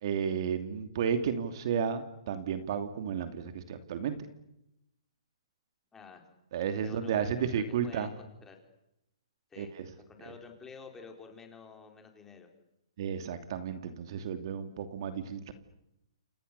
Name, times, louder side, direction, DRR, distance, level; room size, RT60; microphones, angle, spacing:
voice 1, 0.0-4.2 6.5-8.1 9.6-9.8 10.2-10.3 13.0-15.5, right 7 dB, 50° right, 8 dB, 2.8 m, -32 dB
voice 2, 5.9-6.2 6.8-8.6 9.5-9.7 10.1-12.5, left 5 dB, 10° left, 3 dB, 4.4 m, -50 dB
28.5 x 28.5 x 6.9 m, 0.86 s
hypercardioid pair, 155°, 3 cm